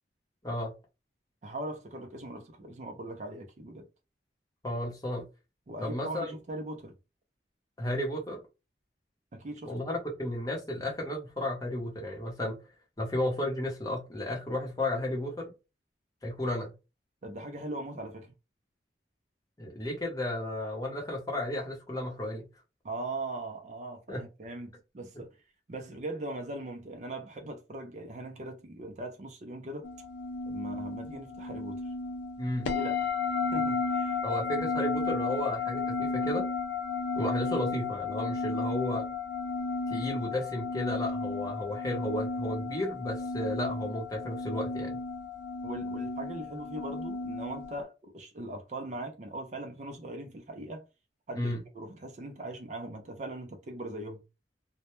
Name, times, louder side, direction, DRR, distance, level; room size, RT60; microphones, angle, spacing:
voice 1, 0.4-0.7 4.6-5.2 5.8-6.3 7.8-8.4 9.7-12.6 13.0-15.5 16.2-16.7 19.6-22.5 24.1-24.2 32.4-32.7 34.2-36.5 37.2-39.0 39.9-45.0 51.4-51.6, left 1 dB, 20° left, 0.7 m, -33 dB
voice 2, 1.4-3.9 5.7-6.9 9.3-9.7 17.2-18.3 22.8-25.3 25.7-29.9 30.5-31.9 32.7-34.2 45.6-50.8 51.3-54.2, right 1 dB, 40° right, 0.4 m, -40 dB
sound 1, 29.8-47.8, left 4 dB, 75° left, 0.4 m, -33 dB
2.1 x 2.1 x 2.9 m
head